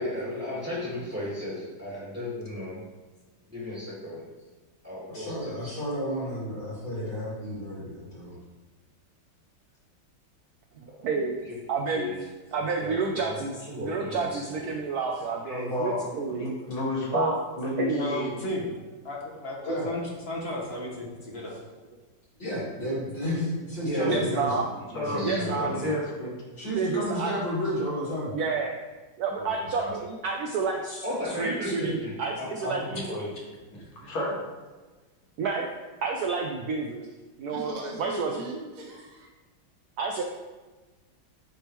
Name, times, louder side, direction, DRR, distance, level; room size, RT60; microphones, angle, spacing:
voice 1, 0.0-2.8 3.5-4.2 4.8-5.7 10.9-11.5 11.9-12.2 12.8-13.4 13.7-14.7 23.8-24.3 24.9-26.0 31.0-33.3, left 1 dB, 5° right, -8 dB, 1.3 m, -34 dB
voice 2, 5.1-8.3 19.6-19.9 22.4-24.5 25.0-25.8 26.6-28.3, equal, 55° left, -8 dB, 2.8 m, -32 dB
voice 3, 11.0-11.4 11.7-12.1 12.5-16.5 17.1-17.3 17.8-18.4 21.1-21.5 24.0-24.7 25.2-26.0 26.7-27.3 28.3-28.8 29.2-32.8 34.0-34.1 35.4-35.7 36.0-37.1 37.4-38.6 40.0-40.2, right 4 dB, 85° right, 2 dB, 0.8 m, -30 dB
voice 4, 15.5-17.9 24.9-25.2 25.6-26.4 33.7-33.8 34.1-34.4, left 1 dB, 85° left, -4 dB, 2.3 m, -30 dB
voice 5, 17.9-18.7 19.0-21.6 24.1-24.4 25.1-25.7 29.4-29.9 32.9-33.1 34.0-34.2, left 2 dB, 40° left, -3 dB, 1.1 m, -35 dB
voice 6, 37.5-39.3, equal, 65° right, -1 dB, 0.4 m, -38 dB
10.0 x 3.5 x 3.0 m, 1.3 s
omnidirectional pair, 2.2 m